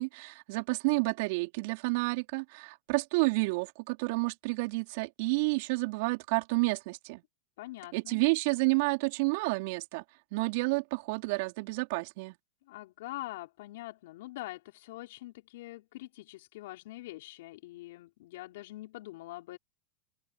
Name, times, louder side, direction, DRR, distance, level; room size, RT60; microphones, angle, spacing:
voice 1, 0.0-7.2 7.9-10.0 10.3-12.3, right 27 dB, 60° right, 4.4 m, -30 dB
voice 2, 7.6-8.2 12.7-19.6, left 18 dB, 70° left, 5.1 m, -44 dB
hypercardioid pair, 100°, 0 cm